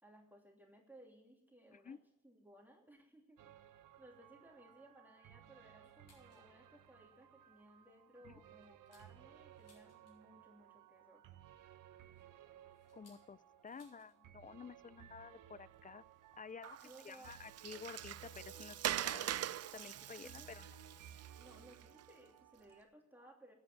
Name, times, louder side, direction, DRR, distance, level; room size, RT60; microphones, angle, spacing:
voice 1, 0.0-2.0 2.2-3.4 4.0-11.2 16.8-17.4 20.2-20.5 21.4-23.5, right 1 dB, 5° right, 0 dB, 2.9 m, -61 dB
sound 1, 3.4-22.8, right 9 dB, 80° right, 1.0 m, -60 dB
sound 2, 5.8-6.5 6.9-7.0 7.4-7.7 8.2-10.4 11.6-14.2 14.5-14.6 14.9-15.2 16.1-16.2 17.1-17.2 18.0-18.2 18.5-18.6 18.8-19.0, left 3 dB, 55° left, 6.3 m, -72 dB
voice 2, 12.9-13.4 13.6-16.0 16.4-20.6, left 5 dB, 25° left, 19 dB, 0.5 m, -52 dB
Water, 16.6-22.0, right 11 dB, 55° right, 0.5 m, -43 dB
12.5 x 8.7 x 9.9 m, 0.84 s
cardioid pair, 80°, 31 cm